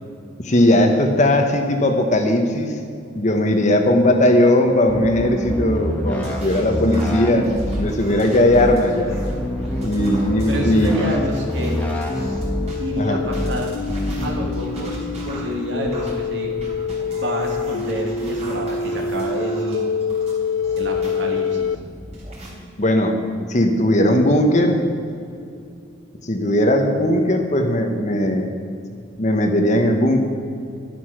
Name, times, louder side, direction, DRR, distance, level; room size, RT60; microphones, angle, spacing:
voice 1, 0.4-2.8 3.1-9.2 9.8-10.9 13.0-13.2 22.8-23.1 23.5-24.8 26.2-28.5 29.2-30.2, left 1 dB, 40° left, 5 dB, 1.2 m, -18 dB
sound 1, 4.9-6.4 6.7-7.9 8.5-8.8 9.1-11.2 11.5-12.7 13.3-13.6 13.9-14.5, equal, 10° left, 1.5 m, -25 dB
sound 2, 6.0-12.8 13.2-21.2 21.6-22.5, right 1 dB, 35° right, 3.6 m, -38 dB
sound 3, 8.6-21.7, left 5 dB, 85° left, 0.4 m, -27 dB
voice 2, 10.5-11.8 12.8-13.7 14.2-15.0 15.2-16.5 17.1-19.9 20.8-21.8, equal, 65° right, 1 dB, 2.4 m, -28 dB
12.0 x 11.5 x 6.0 m, 2.4 s
head